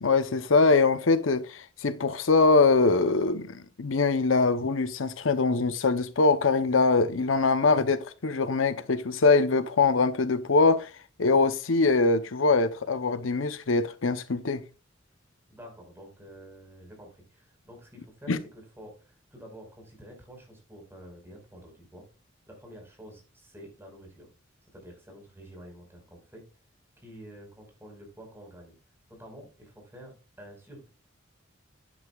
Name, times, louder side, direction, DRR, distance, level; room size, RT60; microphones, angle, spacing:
voice 1, 0.0-10.9 11.2-14.6 18.3-18.4, left 3 dB, 85° left, 0.8 m, -23 dB
voice 2, 15.5-22.1 22.5-24.3 24.7-26.5 27.0-28.7 29.1-30.9, equal, 10° right, 4.8 m, -49 dB
11.0 x 9.6 x 2.4 m
head